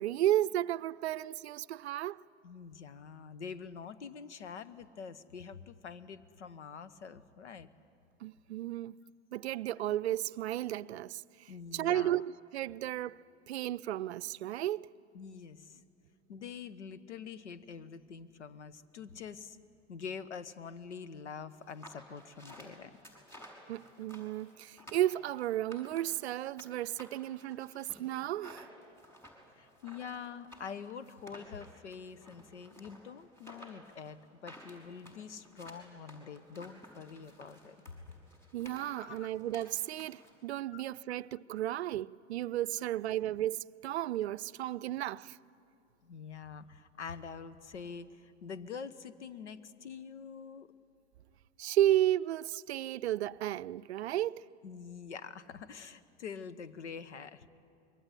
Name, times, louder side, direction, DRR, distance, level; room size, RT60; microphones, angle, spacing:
voice 1, 0.0-2.2 8.2-9.0 9.3-13.2 13.5-14.9 23.7-28.7 38.5-45.4 51.6-54.4, right 13 dB, 65° right, 0.6 m, -33 dB
voice 2, 2.4-7.7 11.5-12.2 15.1-15.8 16.3-19.6 19.9-22.9 29.6-37.7 38.9-39.3 40.7-40.8 46.0-50.7 54.6-57.5, left 6 dB, 70° left, 1.2 m, -45 dB
sound 1, 21.6-26.7 27.0-40.3, equal, 5° left, 5.4 m, -54 dB
26.0 x 22.5 x 9.9 m
figure-of-eight pair, 90°, 36 cm